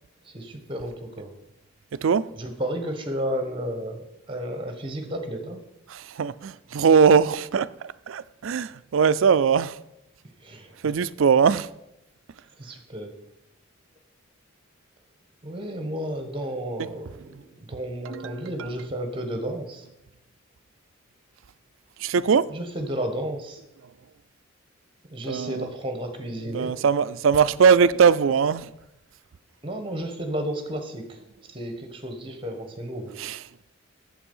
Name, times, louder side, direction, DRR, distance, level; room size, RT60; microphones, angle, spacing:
voice 1, 0.2-1.3 2.3-5.6 10.4-10.8 12.6-13.1 15.4-19.9 22.5-23.6 25.1-26.8 29.6-31.2 31.5-33.1, equal, 25° right, 1.3 m, -32 dB
voice 2, 1.9-2.3 5.9-9.8 10.8-11.7 16.8-16.9 18.1-18.7 22.0-22.5 25.3-25.7 26.5-28.7 33.2-33.4, right 6 dB, 70° right, 0.4 m, -21 dB
8.6 x 7.6 x 5.5 m
head